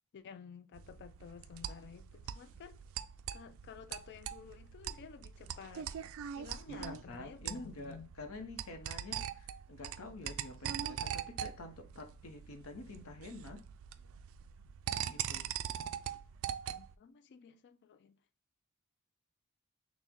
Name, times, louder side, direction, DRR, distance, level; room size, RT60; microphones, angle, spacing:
voice 1, 0.1-2.8 3.3-5.9 6.3-8.1 16.7-18.2, left 7 dB, 50° left, 0.3 m, -52 dB
sound 1, 0.8-16.9, right 9 dB, 65° right, 0.3 m, -42 dB
voice 2, 6.7-13.6 15.0-15.5, left 2 dB, 70° left, 0.8 m, -48 dB
6.2 x 2.1 x 3.5 m
head